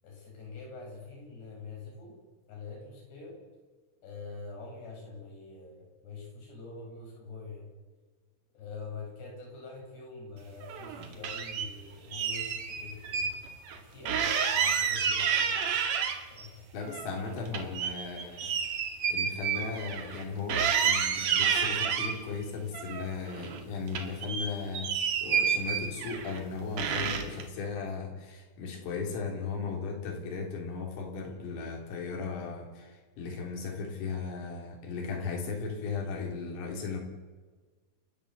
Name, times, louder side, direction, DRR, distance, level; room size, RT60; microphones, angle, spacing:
voice 1, 0.0-2.2 2.5-3.4 4.0-7.7 8.5-13.3 13.8-15.6 16.3-16.7 31.2-31.6, left 4 dB, 55° left, -1 dB, 10.0 m, -45 dB
sound 1, 10.6-11.7 12.1-13.3 13.7-13.8 14.1-16.5 16.8-20.2 20.5-22.2 22.7-23.6 23.9-26.4 26.8-27.4, right 7 dB, 55° right, 2.8 m, -30 dB
voice 2, 16.7-18.7 19.1-24.9 25.2-37.0, left 4 dB, 80° left, 0 dB, 6.2 m, -36 dB
29.5 x 13.5 x 8.3 m, 1.4 s
omnidirectional pair, 5.8 m